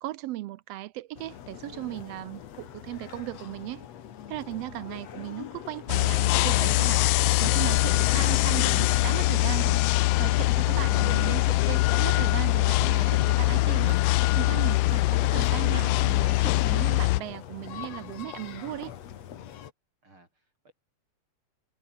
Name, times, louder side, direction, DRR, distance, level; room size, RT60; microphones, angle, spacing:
voice 1, 0.0-3.9 4.3-18.9, right 16 dB, 75° right, 1.5 m, -37 dB
sound 1, 1.1-19.7, left 10 dB, 65° left, 2.6 m, -43 dB
voice 2, 5.8-6.2 7.4-8.1 20.0-20.7, right 2 dB, 45° right, 8.5 m, -55 dB
sound 2, 5.9-17.2, left 19 dB, 90° left, 1.3 m, -23 dB
omnidirectional pair, 3.3 m